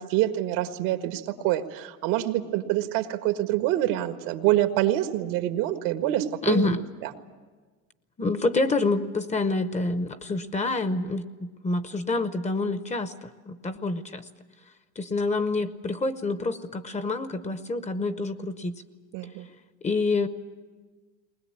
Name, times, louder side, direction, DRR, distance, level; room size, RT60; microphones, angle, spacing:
voice 1, 0.0-6.7 7.0-7.1 19.1-19.5, right 14 dB, 85° right, 7 dB, 1.6 m, -26 dB
voice 2, 6.4-6.8 8.2-14.2 15.0-18.7 19.8-20.3, left 3 dB, 15° left, 12 dB, 0.8 m, -27 dB
20.5 x 20.5 x 8.6 m, 1.4 s
cardioid pair, 130°, 41 cm